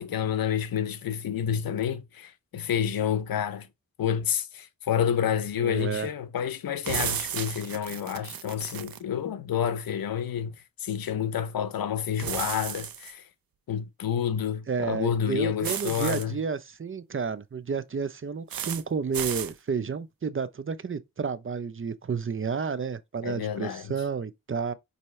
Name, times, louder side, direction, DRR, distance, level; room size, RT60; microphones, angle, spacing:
voice 1, 0.0-3.7 4.0-10.5 10.8-13.2 13.7-16.4 23.2-23.9, left 8 dB, 90° left, 0.6 m, -29 dB
voice 2, 5.6-6.1 14.7-24.7, right 5 dB, 40° right, 0.5 m, -31 dB
sound 1, 6.8-9.0 12.2-13.1 15.6-16.2 18.5-18.8 19.1-19.5, right 9 dB, 90° right, 0.6 m, -33 dB
5.4 x 2.8 x 3.1 m
cardioid pair, 50°, 34 cm